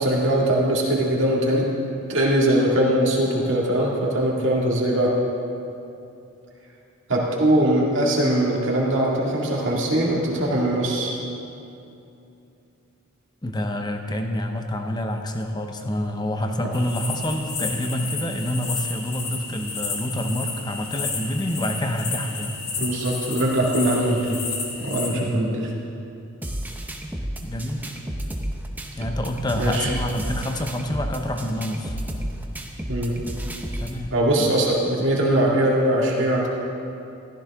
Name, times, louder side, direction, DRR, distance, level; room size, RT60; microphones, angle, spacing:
voice 1, 0.0-1.7 2.1-5.1 7.1-11.1 22.8-24.4 24.8-25.6 29.5-29.9 32.9-33.2 34.1-36.5, right 1 dB, 60° right, -3 dB, 2.2 m, -21 dB
voice 2, 13.4-22.6 25.1-25.6 27.4-27.9 29.0-32.0 33.8-34.5, equal, 20° left, 4 dB, 0.8 m, -27 dB
sound 1, 16.7-25.1, left 4 dB, 50° left, 2.0 m, -32 dB
sound 2, 26.4-34.0, equal, 10° right, 0.8 m, -32 dB
14.5 x 13.5 x 3.6 m, 2.7 s
head